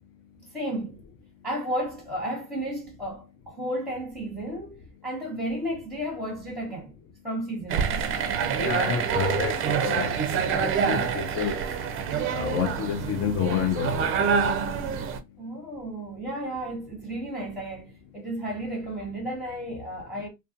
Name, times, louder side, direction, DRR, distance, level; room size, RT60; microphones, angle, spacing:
voice 1, 0.4-1.0 1.4-6.9 7.2-8.0 15.4-20.3, right 1 dB, ahead, 1.0 m, -33 dB
sound 1, 7.7-15.2, right 7 dB, 35° right, 0.5 m, -26 dB
voice 2, 8.6-11.6 12.3-14.1, left 7 dB, 35° left, 0.4 m, -29 dB
2.3 x 2.2 x 2.5 m
hypercardioid pair, 85°, 39 cm